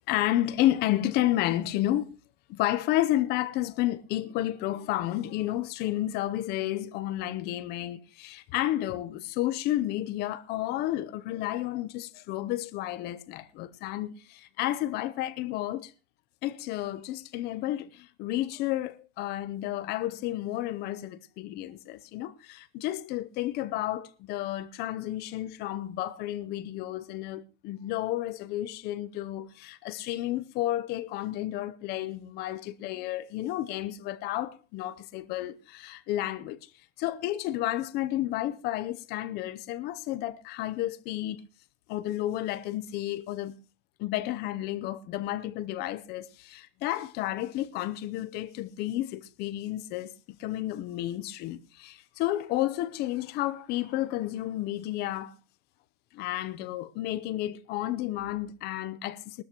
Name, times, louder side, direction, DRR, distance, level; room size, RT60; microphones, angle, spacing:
voice 1, 0.1-2.1 2.5-15.9 16.4-36.6 37.0-41.4 41.9-43.6 44.0-50.1 50.4-55.4 56.1-59.4, left 14 dB, 30° left, 0.7 m, -31 dB
21.0 x 13.0 x 3.0 m
supercardioid pair, 150°, 34 cm